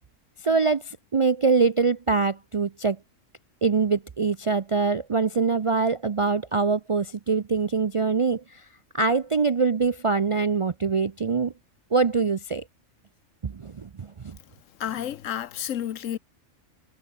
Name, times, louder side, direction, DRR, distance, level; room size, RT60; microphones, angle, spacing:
voice 1, 0.4-3.0 3.6-8.6 8.9-11.5 11.9-12.6 13.4-14.4, right 4 dB, 50° right, 0.4 m, -24 dB
voice 2, 14.8-16.2, left 10 dB, 80° left, 1.2 m, -30 dB
omnidirectional pair, 1.3 m